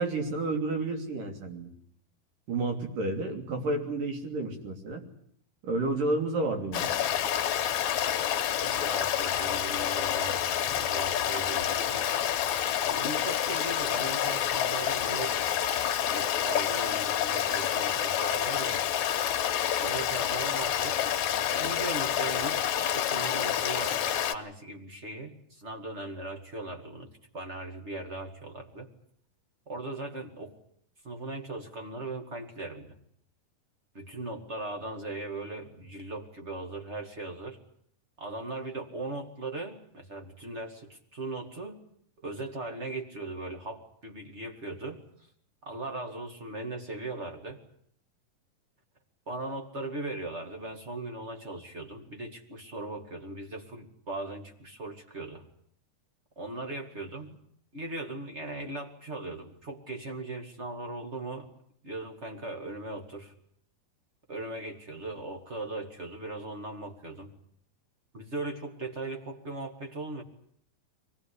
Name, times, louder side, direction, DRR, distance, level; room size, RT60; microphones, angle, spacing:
voice 1, 0.0-1.7 2.5-5.0 5.6-6.9, right 2 dB, 70° right, 4 dB, 4.7 m, -30 dB
Stream, 6.7-24.3, left 10 dB, 65° left, 2.3 m, -28 dB
voice 2, 8.6-10.5 10.7-12.1 12.9-15.3 16.1-18.8 19.8-21.0 21.5-22.6 22.9-24.0 24.3-28.9 29.7-30.6 31.0-33.0 33.9-37.6 38.2-41.8 42.2-45.0 45.6-47.6 49.3-55.5 56.4-57.4 57.7-61.5 61.8-63.3 64.3-67.3 68.1-70.2, right 2 dB, 25° right, 5 dB, 2.0 m, -38 dB
24.0 x 19.0 x 10.0 m, 0.64 s
omnidirectional pair, 4.0 m